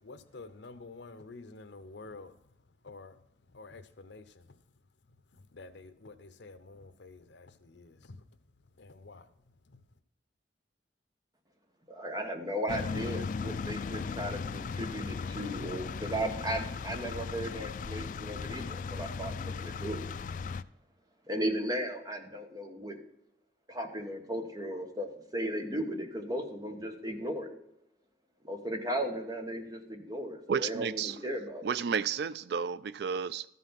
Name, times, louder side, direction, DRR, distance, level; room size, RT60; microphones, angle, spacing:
voice 1, 0.0-2.3 2.8-3.2 3.5-4.6 5.3-8.2 8.8-9.3 9.7-9.8, left 3 dB, 75° left, 0.8 m, -49 dB
voice 2, 11.9-20.0 21.3-23.0 23.7-27.5 28.4-31.7, equal, 20° right, 1.2 m, -36 dB
sound 1, 12.7-20.6, left 5 dB, 45° left, 0.3 m, -37 dB
voice 3, 30.5-31.2 31.6-33.5, right 7 dB, 60° right, 0.3 m, -32 dB
13.0 x 5.6 x 5.7 m
head